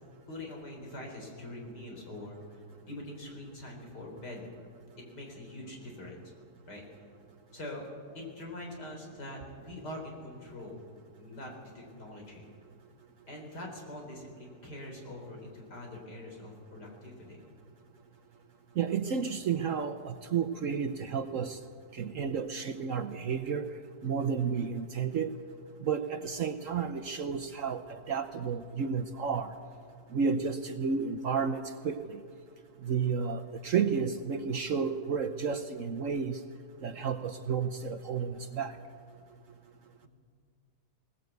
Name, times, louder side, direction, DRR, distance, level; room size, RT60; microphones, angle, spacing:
voice 1, 0.3-4.5 5.1-6.3 6.7-6.8 7.5-10.8 11.2-12.5 13.3-17.4, left 1 dB, 70° left, 1 dB, 4.7 m, -44 dB
voice 2, 18.8-21.6 22.0-23.7 24.0-25.3 25.8-27.8 28.1-29.5 30.1-32.2 32.8-36.4 36.8-38.7, right 6 dB, 60° right, 9 dB, 1.0 m, -31 dB
20.0 x 19.0 x 8.1 m, 2.2 s
omnidirectional pair, 1.9 m